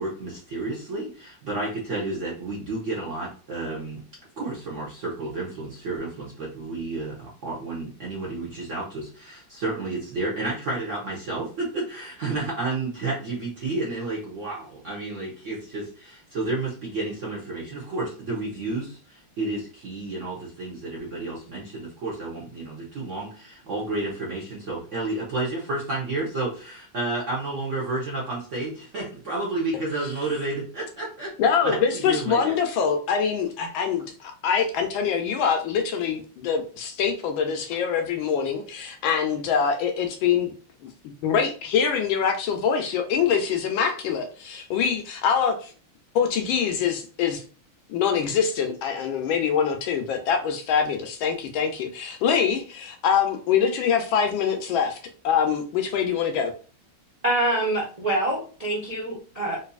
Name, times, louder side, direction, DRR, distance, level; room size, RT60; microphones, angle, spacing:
voice 1, 0.0-4.0 4.4-31.3 31.6-32.5, right 2 dB, 55° right, -5 dB, 0.9 m, -31 dB
voice 2, 31.4-40.5 40.8-40.9 41.2-45.7 46.1-47.4 47.9-55.0 55.2-56.5, left 7 dB, 75° left, 5 dB, 1.2 m, -24 dB
voice 3, 57.2-59.6, right 1 dB, 75° right, -5 dB, 0.3 m, -25 dB
3.9 x 2.6 x 2.3 m, 0.38 s
omnidirectional pair, 2.4 m